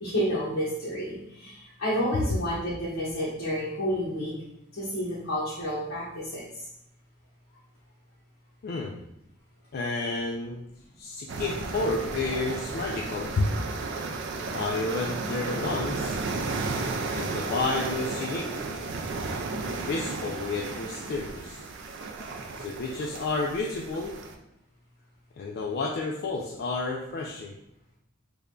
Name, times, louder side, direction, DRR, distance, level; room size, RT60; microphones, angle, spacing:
voice 1, 0.0-4.3 4.7-6.4, equal, 80° left, -9 dB, 0.9 m, -30 dB
voice 2, 8.6-8.9 9.7-10.6 11.0-13.5 14.5-16.2 17.1-18.5 19.9-21.6 22.6-24.1 25.4-27.5, left 3 dB, 50° left, 0 dB, 0.3 m, -30 dB
sound 1, 11.3-24.3, right 3 dB, 60° right, 0.4 m, -33 dB
3.3 x 2.2 x 3.7 m, 0.79 s
head